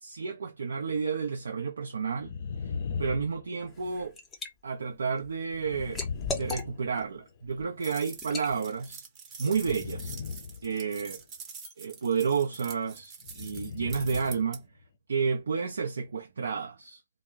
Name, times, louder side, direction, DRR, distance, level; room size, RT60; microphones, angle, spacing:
voice 1, 0.0-2.3 3.0-4.2 4.6-6.0 6.3-9.0 9.4-10.1 10.6-11.2 11.8-14.6 15.1-17.0, right 5 dB, 70° right, 0.5 m, -31 dB
sound 1, 2.2-4.1 5.6-7.4 9.5-11.2 13.2-14.5 14.8-14.9, left 5 dB, 50° left, 0.4 m, -38 dB
Liquid, 3.7-4.5 4.9-7.0 7.5-7.7 8.2-8.5, left 3 dB, 15° left, 0.6 m, -37 dB
sound 2, 7.8-14.6, right 5 dB, 20° right, 0.7 m, -45 dB
2.2 x 2.0 x 3.4 m
figure-of-eight pair, 135°, 0 cm